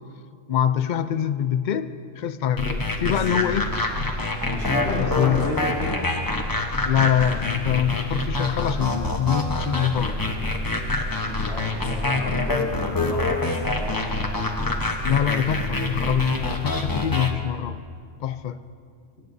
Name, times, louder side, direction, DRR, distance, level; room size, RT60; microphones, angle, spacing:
voice 1, 0.5-3.7 5.0-5.5 6.8-10.2 15.0-17.8 18.2-18.6, left 9 dB, 80° left, 12 dB, 0.4 m, -24 dB
sound 1, 2.6-17.3, left 2 dB, 20° left, 0.8 m, -26 dB
voice 2, 3.0-3.8 4.5-6.0 11.3-14.2, left 2 dB, 60° left, -7 dB, 3.1 m, -32 dB
22.0 x 17.5 x 2.7 m, 2.3 s
omnidirectional pair, 1.3 m